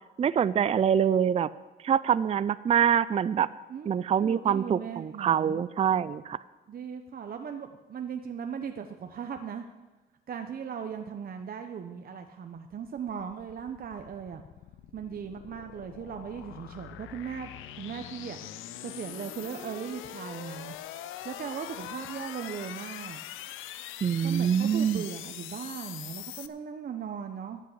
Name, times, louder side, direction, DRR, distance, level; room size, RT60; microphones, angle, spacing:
voice 1, 0.2-1.5 1.8-3.5 3.9-6.4 24.0-25.0, right 8 dB, 30° right, 16 dB, 0.4 m, -25 dB
voice 2, 3.7-5.6 6.7-9.6 10.3-14.4 14.9-17.5 17.8-18.4 18.8-20.7 21.2-23.2 24.2-27.6, right 7 dB, 50° right, 5 dB, 0.9 m, -38 dB
sound 1, 12.7-26.5, left 12 dB, 90° left, 0.6 m, -43 dB
13.0 x 6.6 x 8.6 m, 1.1 s
cardioid pair, 90°, 20 cm